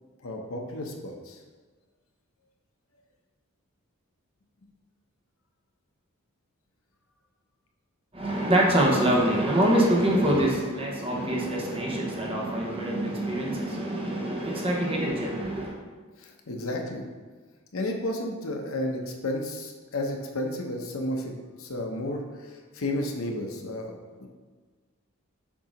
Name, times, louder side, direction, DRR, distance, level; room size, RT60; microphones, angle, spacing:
voice 1, 0.2-1.4 16.2-17.0 17.7-24.3, left 1 dB, 70° left, 2 dB, 0.8 m, -32 dB
voice 2, 8.1-15.8, right 1 dB, 25° right, -2 dB, 1.0 m, -25 dB
7.3 x 2.8 x 5.0 m, 1.4 s
head